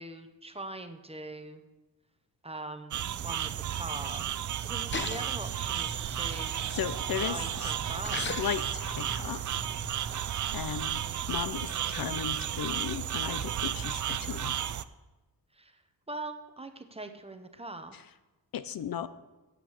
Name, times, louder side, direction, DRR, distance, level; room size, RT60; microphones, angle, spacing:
voice 1, 0.0-1.7 2.4-6.5 7.2-8.3 15.5-15.8 16.1-17.9, right 2 dB, 15° right, 8 dB, 0.7 m, -42 dB
sound 1, 2.9-14.8, right 10 dB, 50° right, 0.4 m, -33 dB
Splash splatter, 4.9-10.0, left 3 dB, 30° left, 0.9 m, -41 dB
voice 2, 6.7-7.7 8.1-9.7 10.1-11.0 11.3-14.7 17.9-18.0 18.5-19.1, left 9 dB, 60° left, 13 dB, 0.6 m, -36 dB
8.8 x 8.3 x 7.1 m, 1.1 s
wide cardioid pair, 145°, 40 cm